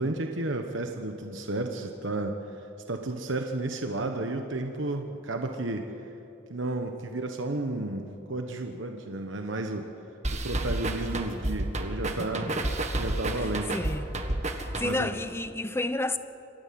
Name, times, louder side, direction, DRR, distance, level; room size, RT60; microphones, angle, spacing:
voice 1, 0.0-2.3 2.9-5.9 6.5-9.9 10.3-12.5 13.0-13.7 14.8-15.1, right 2 dB, 70° right, 1.3 m, -32 dB
sound 1, 10.2-15.2, right 1 dB, 35° right, 1.5 m, -31 dB
voice 2, 12.2-12.7 13.4-14.0 14.6-16.2, left 2 dB, 15° left, 0.7 m, -31 dB
27.5 x 12.5 x 7.7 m
head